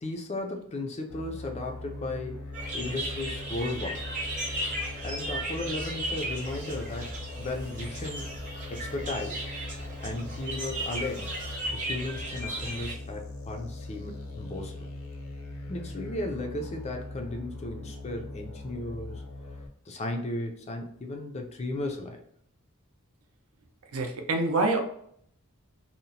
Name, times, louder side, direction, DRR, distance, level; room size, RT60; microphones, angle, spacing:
voice 1, 0.0-4.0 5.0-8.3 8.7-9.5 10.0-11.4 11.7-14.9 15.7-19.2 19.9-22.2, left 2 dB, 30° left, 3 dB, 0.3 m, -35 dB
sound 1, 1.1-19.7, left 2 dB, 75° left, 0.6 m, -41 dB
sound 2, 2.5-13.0, right 1 dB, 35° right, 0.8 m, -36 dB
voice 2, 23.9-24.8, right 2 dB, 70° right, 4 dB, 0.5 m, -26 dB
2.8 x 2.0 x 2.7 m, 0.67 s
head